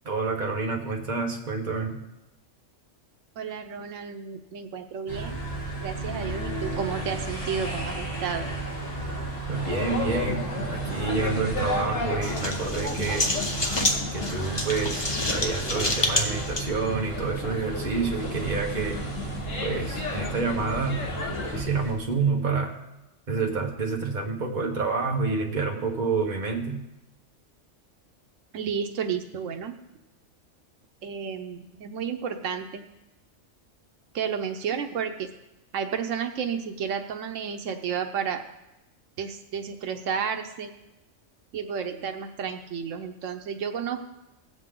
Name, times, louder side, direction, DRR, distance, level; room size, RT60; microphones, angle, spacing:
voice 1, 0.0-2.0 9.5-10.4 10.7-13.3 14.1-19.0 19.6-21.1 21.5-22.7 23.3-26.8, right 4 dB, 40° right, 1 dB, 1.4 m, -28 dB
voice 2, 3.4-5.4 5.8-8.5 28.5-29.7 31.0-32.8 34.1-35.3 35.7-38.4 39.2-40.7 41.5-44.1, right 7 dB, 90° right, 6 dB, 1.2 m, -32 dB
sound 1, 5.1-21.9, right 3 dB, 70° left, 4.9 m, -34 dB
sound 2, 9.5-21.6, left 3 dB, 85° left, 1.9 m, -34 dB
sound 3, 12.2-16.6, left 1 dB, 25° left, 0.9 m, -28 dB
17.0 x 8.0 x 3.8 m, 0.93 s
omnidirectional pair, 1.3 m